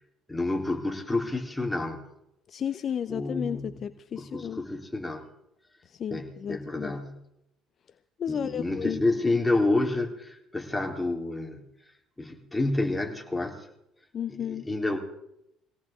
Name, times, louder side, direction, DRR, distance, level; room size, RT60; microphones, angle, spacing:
voice 1, 0.3-2.0 3.1-3.8 4.1-5.3 6.1-7.2 8.3-11.7 12.2-13.7 14.4-15.0, left 2 dB, 10° left, 3.4 m, -29 dB
voice 2, 2.5-4.7 5.8-7.0 8.2-9.0 14.1-14.7, left 8 dB, 45° left, 0.6 m, -33 dB
22.5 x 17.5 x 3.6 m
hypercardioid pair, 60°, 0 cm